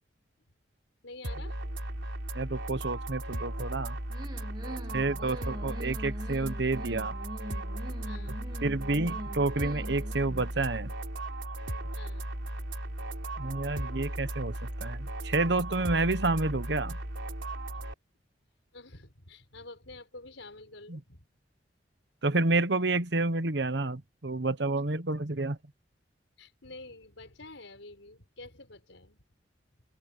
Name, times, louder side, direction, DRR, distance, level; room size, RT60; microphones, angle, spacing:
voice 1, 1.0-1.6 1.9-2.0 4.6-5.7 8.0-8.6 11.8-12.3 17.7-17.9 18.7-21.3 26.4-29.2, left 2 dB, 80° left, 5.3 m, -49 dB
sound 1, 1.2-17.9, right 1 dB, 85° right, 3.6 m, -36 dB
voice 2, 2.3-4.0 4.9-7.1 8.6-10.9 13.4-14.5 14.8-17.0 20.9-21.0 22.2-25.6, right 2 dB, 65° right, 1.2 m, -29 dB
sound 2, 4.1-10.5, equal, 25° right, 1.9 m, -44 dB
open air
head